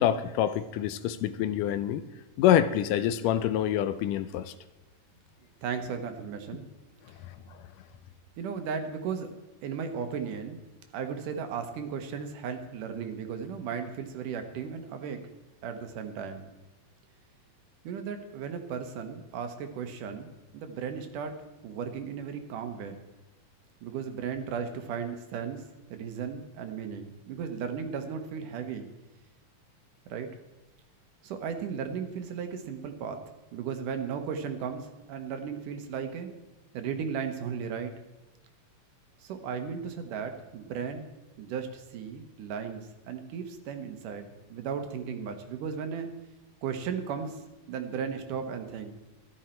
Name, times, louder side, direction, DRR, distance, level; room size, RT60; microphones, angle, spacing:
voice 1, 0.0-2.0 2.4-4.5, left 11 dB, 80° left, 12 dB, 2.1 m, -26 dB
voice 2, 5.6-6.7 8.4-9.3 9.6-10.6 10.9-15.2 15.6-16.5 17.8-21.3 21.6-23.0 23.8-25.7 25.9-28.9 30.1-30.3 31.2-33.2 33.5-36.3 36.7-37.9 39.2-41.1 41.4-46.1 46.6-47.4 47.7-48.9, right 6 dB, 75° right, 7 dB, 2.6 m, -35 dB
14.0 x 12.0 x 4.4 m, 1.1 s
omnidirectional pair, 3.8 m